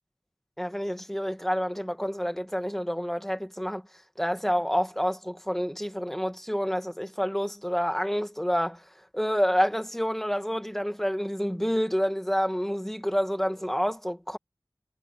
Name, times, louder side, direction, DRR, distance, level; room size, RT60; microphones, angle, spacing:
voice 1, 0.6-3.8 4.2-8.8 9.1-14.4, equal, 5° left, 2.0 m, -28 dB
wide cardioid pair, 50°, 8 cm